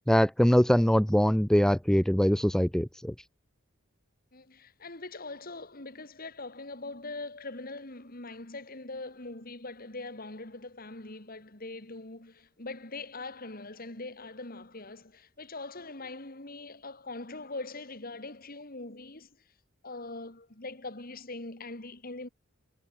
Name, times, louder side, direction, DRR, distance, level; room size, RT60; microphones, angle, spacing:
voice 1, 0.1-3.1, equal, 5° left, 0.7 m, -23 dB
voice 2, 4.3-19.3 19.8-22.3, left 2 dB, 45° left, 2.7 m, -42 dB
head